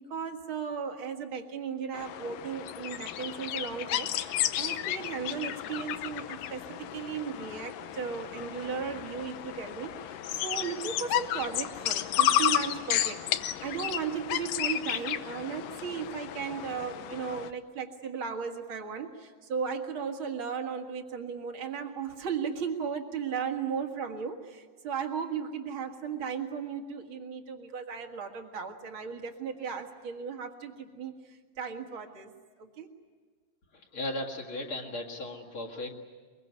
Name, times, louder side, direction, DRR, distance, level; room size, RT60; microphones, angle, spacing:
voice 1, 0.0-32.3 32.6-32.9, right 6 dB, 45° right, 4 dB, 2.1 m, -36 dB
sound 1, 1.9-17.5, left 12 dB, 80° left, 2.4 m, -32 dB
voice 2, 33.7-35.9, left 1 dB, 45° left, -1 dB, 2.5 m, -36 dB
23.0 x 23.0 x 9.7 m, 1.5 s
omnidirectional pair, 3.9 m